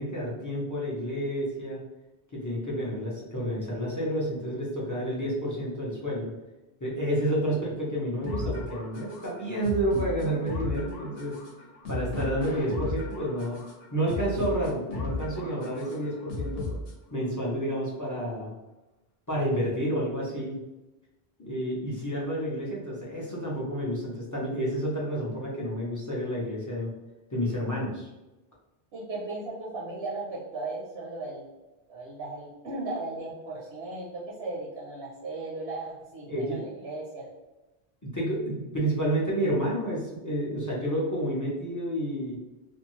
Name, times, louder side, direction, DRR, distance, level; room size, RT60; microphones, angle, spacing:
voice 1, 0.0-1.8 2.3-6.3 6.8-11.4 11.9-13.6 13.9-16.7 17.1-18.6 19.3-20.6 21.4-26.9 27.3-28.1 36.3-36.6 38.0-42.4, right 1 dB, 25° left, -5 dB, 0.5 m, -30 dB
sound 1, 8.2-17.2, left 2 dB, 70° left, 0.9 m, -35 dB
voice 2, 28.9-31.4 31.9-37.3, right 2 dB, 80° right, -5 dB, 1.0 m, -36 dB
2.6 x 2.2 x 3.0 m, 1.0 s
omnidirectional pair, 1.0 m